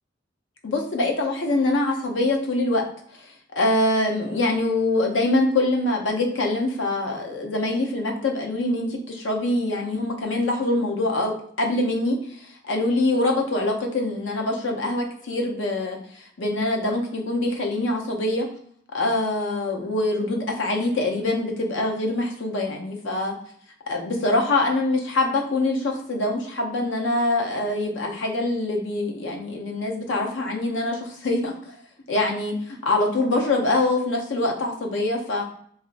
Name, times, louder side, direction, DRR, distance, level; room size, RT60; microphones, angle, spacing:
voice 1, 0.6-2.8 3.1-18.5 18.9-23.3 23.9-31.7 32.1-35.4, left 2 dB, 85° left, 1 dB, 0.6 m, -24 dB
3.0 x 2.5 x 2.5 m, 0.64 s
head